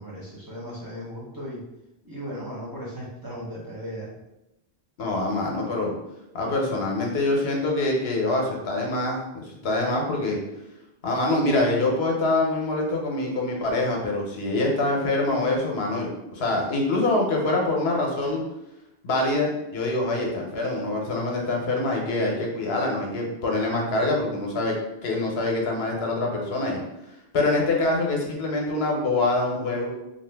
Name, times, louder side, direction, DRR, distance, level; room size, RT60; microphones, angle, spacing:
voice 1, 0.0-1.6 2.0-4.1, equal, 25° right, -7 dB, 0.7 m, -36 dB
voice 2, 5.0-5.9 6.3-10.4 11.0-18.4 19.0-24.8 25.0-26.8 27.3-29.9, left 2 dB, 75° left, 0 dB, 0.9 m, -25 dB
2.7 x 2.4 x 3.3 m, 0.89 s
omnidirectional pair, 1.1 m